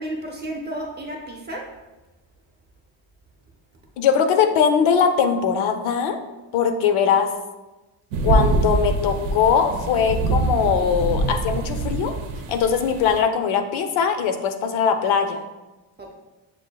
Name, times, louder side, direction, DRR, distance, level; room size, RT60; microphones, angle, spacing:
voice 1, 0.0-1.7 16.0-16.1, right 1 dB, 20° right, -1 dB, 0.5 m, -32 dB
voice 2, 4.0-6.2 6.5-7.3 8.2-12.1 12.5-15.4, left 7 dB, 75° left, 7 dB, 0.6 m, -21 dB
sound 1, 8.1-13.2, right 3 dB, 80° right, 0.6 m, -24 dB
6.9 x 2.6 x 2.2 m, 1.1 s
cardioid pair, 155°, 48 cm